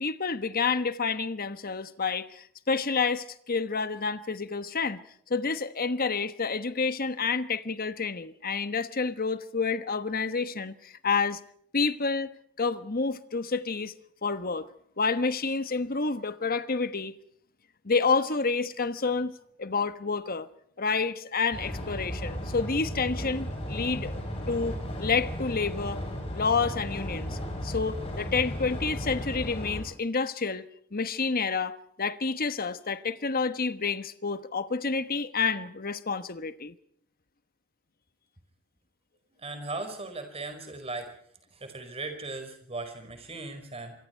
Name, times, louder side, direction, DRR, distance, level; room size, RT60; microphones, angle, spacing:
voice 1, 0.0-5.0 5.3-11.4 11.7-13.9 14.2-14.7 15.0-17.1 17.8-19.3 19.6-20.5 20.8-26.0 26.3-30.7 30.9-36.7, left 4 dB, 40° left, 1.2 m, -29 dB
sound 1, 21.5-29.8, equal, 25° left, 7.8 m, -35 dB
voice 2, 39.3-41.1 41.6-43.9, right 3 dB, 25° right, 5.1 m, -38 dB
26.0 x 24.0 x 4.6 m
head